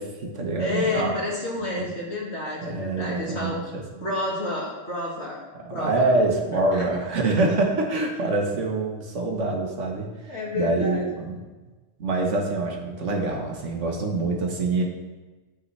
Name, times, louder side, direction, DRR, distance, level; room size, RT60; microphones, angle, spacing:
voice 1, 0.0-1.1 1.8-1.9 2.6-3.8 5.5-11.4 12.0-14.8, right 2 dB, 70° right, 1 dB, 1.5 m, -25 dB
voice 2, 0.6-3.6 4.0-5.4 5.7-6.0 6.7-6.9 10.3-11.0, left 2 dB, 60° left, -3 dB, 2.2 m, -29 dB
8.7 x 8.1 x 3.3 m, 1.2 s
omnidirectional pair, 1.3 m